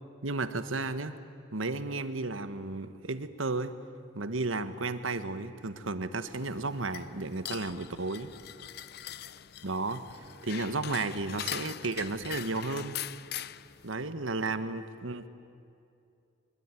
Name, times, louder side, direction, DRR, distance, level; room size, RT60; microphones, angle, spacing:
voice 1, 0.2-1.1 1.5-3.8 4.1-8.3 9.6-13.0 13.8-15.3, right 3 dB, 85° right, 11 dB, 1.4 m, -33 dB
sound 1, 6.3-13.9, left 11 dB, 50° left, 0.5 m, -42 dB
24.5 x 22.0 x 9.9 m, 2.6 s
head